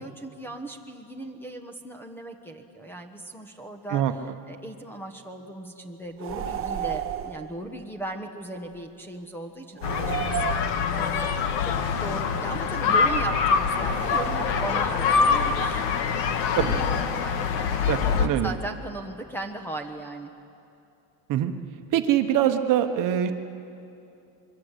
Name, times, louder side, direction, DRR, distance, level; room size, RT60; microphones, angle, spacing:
voice 1, 0.0-4.2 4.5-20.3, right 2 dB, 5° left, 5 dB, 1.1 m, -38 dB
sound 1, 6.2-7.5 9.8-11.2 13.9-15.0, right 11 dB, 30° right, 1.0 m, -33 dB
sound 2, 9.8-18.3, left 6 dB, 70° left, 1.7 m, -24 dB
voice 2, 17.9-18.5 21.3-21.5 21.9-23.3, right 11 dB, 45° right, 7 dB, 1.2 m, -23 dB
26.0 x 23.0 x 8.2 m, 2.7 s
cardioid pair, 170°, 44 cm